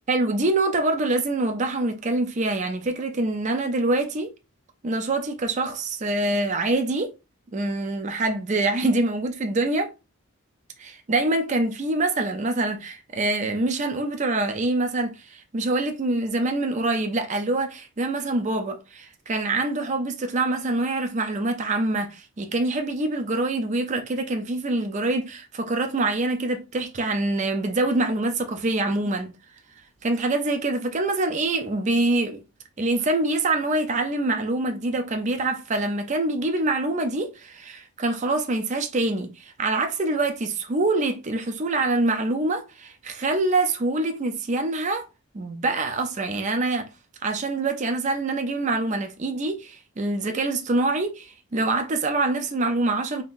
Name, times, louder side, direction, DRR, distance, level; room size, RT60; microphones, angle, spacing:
voice 1, 0.1-4.3 4.8-7.1 7.5-9.9 10.8-29.3 30.0-32.4 32.8-45.1 45.3-46.9 47.2-53.2, right 2 dB, 35° right, 0.4 m, -25 dB
3.6 x 2.7 x 2.5 m
head